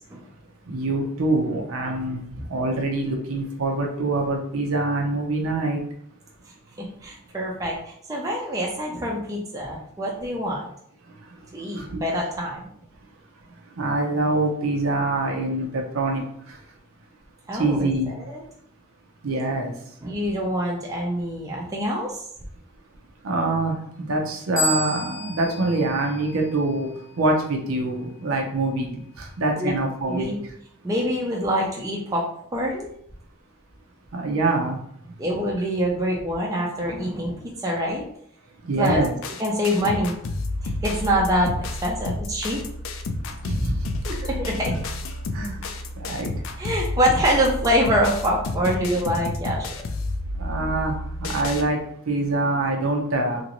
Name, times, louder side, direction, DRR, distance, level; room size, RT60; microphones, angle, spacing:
voice 1, 0.7-2.2 2.5-5.8 11.8-12.0 13.8-16.2 17.6-18.1 19.2-19.7 23.2-26.9 27.2-30.3 34.1-34.8 38.7-39.1 43.5-43.8 45.3-45.5 46.0-46.3 50.4-50.9 51.2-51.8 52.1-53.4, right 2 dB, 85° right, 1 dB, 0.6 m, -24 dB
voice 2, 6.8-10.6 11.5-12.6 17.5-18.4 20.0-22.2 29.6-29.7 30.0-30.4 30.8-32.2 32.5-32.9 35.2-38.0 38.8-39.0 39.4-40.1 40.6-42.6 44.1-44.7 46.6-49.7, equal, 15° right, -2 dB, 0.4 m, -25 dB
sound 1, 24.6-27.0, left 1 dB, 40° left, 0.8 m, -30 dB
sound 2, 38.9-51.6, left 2 dB, 70° left, 0.4 m, -30 dB
2.9 x 2.6 x 2.9 m, 0.69 s
head